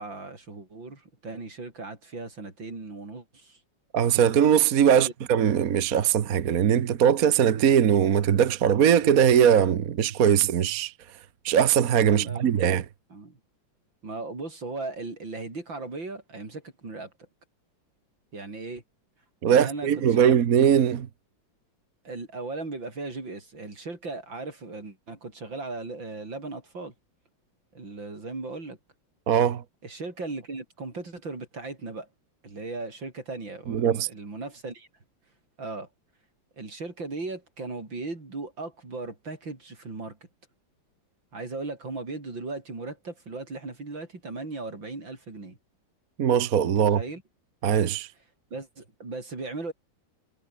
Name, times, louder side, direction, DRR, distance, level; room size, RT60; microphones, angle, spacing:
voice 1, 0.0-3.6 4.9-5.1 12.1-12.7 13.1-13.4 14.0-17.1 18.3-18.8 19.4-20.4 22.0-26.9 27.7-28.8 29.8-32.1 32.4-34.9 35.6-35.9 36.6-40.2 41.3-45.6 46.8-47.2 48.5-49.7, right 3 dB, 80° right, 6.3 m, -37 dB
voice 2, 3.9-10.9 11.4-12.8 19.4-21.1 29.3-29.6 33.7-34.1 46.2-47.0 47.6-48.1, right 8 dB, 55° right, 1.4 m, -21 dB
omnidirectional pair, 2.0 m